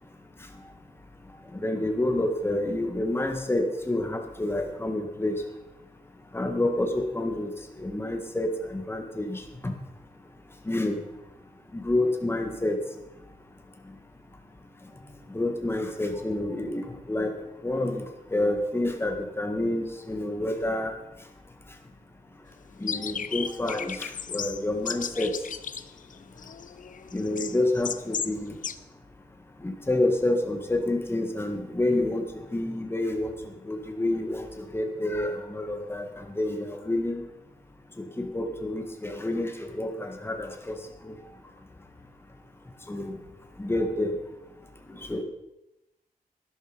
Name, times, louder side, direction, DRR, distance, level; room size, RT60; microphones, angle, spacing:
voice 1, 1.5-5.3 6.3-7.5 7.8-9.7 10.7-11.0 11.7-12.8 15.3-17.3 17.6-18.0 18.3-20.9 22.8-25.3 27.1-28.5 29.6-32.2 32.5-33.3 33.7-34.5 34.7-37.2 38.2-40.8 41.1-41.2 42.9-43.1 43.6-44.1 45.1-45.2, left 1 dB, 15° left, 4 dB, 1.8 m, -28 dB
sound 1, 22.9-28.4 28.6-28.8, left 7 dB, 60° left, 0.6 m, -35 dB
12.5 x 11.0 x 5.1 m, 0.93 s
wide cardioid pair, 115°, 15 cm